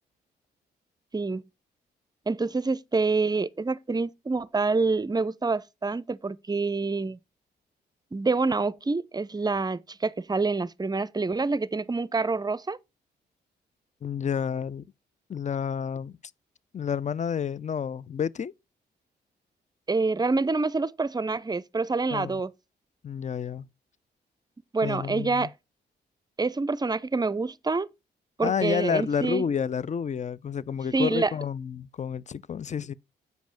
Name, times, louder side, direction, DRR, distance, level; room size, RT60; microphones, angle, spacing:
voice 1, 2.3-7.2 8.1-12.8 19.9-22.5 24.7-25.5 26.4-27.9 28.4-29.4 30.9-31.3, right 3 dB, 20° right, 0.6 m, -27 dB
voice 2, 14.0-14.8 15.3-16.2 16.7-18.5 22.1-22.4 23.0-23.7 24.8-25.5 28.4-32.9, left 7 dB, 40° left, 0.6 m, -30 dB
8.0 x 5.2 x 5.7 m
cardioid pair, 70°, 18 cm